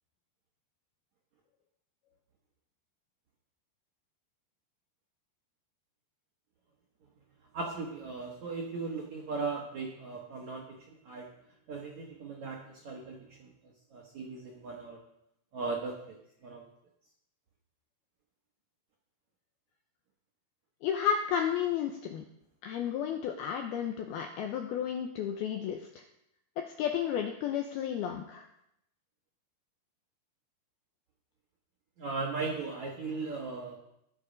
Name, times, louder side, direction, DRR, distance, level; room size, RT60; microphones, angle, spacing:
voice 1, 7.5-11.3 11.7-13.5 13.9-15.0 15.5-16.2 16.4-16.6 32.0-33.8, right 4 dB, 70° right, -2 dB, 1.7 m, -37 dB
voice 2, 20.8-22.2 22.6-26.0 26.8-28.4, left 8 dB, 90° left, 4 dB, 2.2 m, -32 dB
19.5 x 7.0 x 5.2 m, 0.79 s
omnidirectional pair, 5.5 m